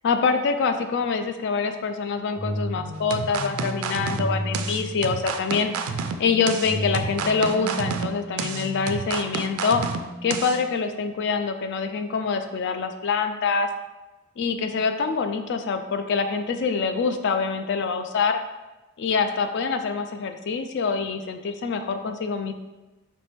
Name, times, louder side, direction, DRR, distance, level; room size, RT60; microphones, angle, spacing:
voice 1, 0.0-5.7 6.2-9.8 10.2-13.7 14.4-18.4 19.0-22.5, left 5 dB, 55° left, 7 dB, 0.4 m, -25 dB
sound 1, 2.4-5.5 6.6-9.6, equal, 10° left, 0.7 m, -33 dB
sound 2, 3.1-10.6, right 5 dB, 70° right, 0.3 m, -30 dB
4.3 x 3.1 x 3.4 m, 1.1 s
head